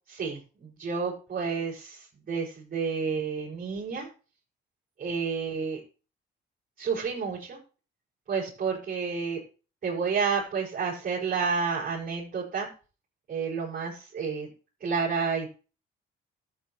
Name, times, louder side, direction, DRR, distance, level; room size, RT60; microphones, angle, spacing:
voice 1, 0.1-4.1 5.0-5.8 6.8-7.6 8.3-9.4 9.8-12.7 13.3-14.5 14.8-15.5, right 5 dB, 50° right, -6 dB, 5.8 m, -30 dB
13.5 x 8.4 x 3.2 m, 0.34 s
cardioid pair, 90°, 20 cm